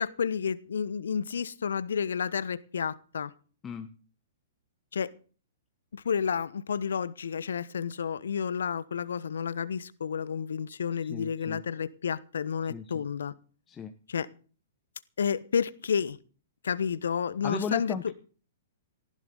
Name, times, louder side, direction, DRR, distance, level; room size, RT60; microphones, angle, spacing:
voice 1, 0.0-3.3 4.9-5.1 5.9-13.3 14.1-14.3 15.2-16.2 16.6-18.0, left 7 dB, 70° left, 1.1 m, -30 dB
voice 2, 11.0-11.6 12.7-13.0 13.7-13.9 17.4-18.1, left 6 dB, 20° left, 1.1 m, -36 dB
18.5 x 15.0 x 4.0 m
figure-of-eight pair, 115°, 0 cm